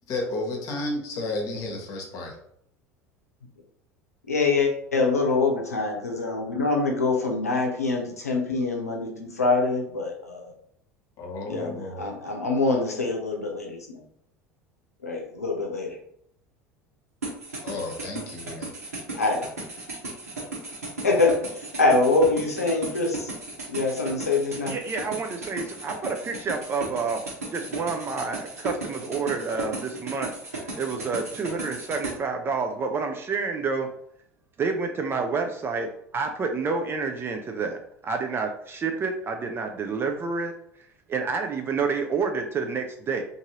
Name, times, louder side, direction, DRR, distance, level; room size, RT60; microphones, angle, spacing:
voice 1, 0.1-2.4 11.2-12.1 17.6-18.7, left 2 dB, 50° left, 1 dB, 0.9 m, -32 dB
voice 2, 4.3-10.5 11.5-14.0 15.0-16.0 19.1-19.5 21.0-23.3 23.7-24.8, left 3 dB, 90° left, 1 dB, 0.6 m, -25 dB
sound 1, 17.2-32.1, right 2 dB, 80° right, 1.0 m, -35 dB
voice 3, 24.7-27.2 27.5-30.3 30.7-33.9 34.6-37.8 38.0-40.5 41.1-43.2, right 4 dB, 30° right, 4 dB, 0.4 m, -29 dB
2.6 x 2.5 x 2.8 m, 0.70 s
figure-of-eight pair, 70°, 8 cm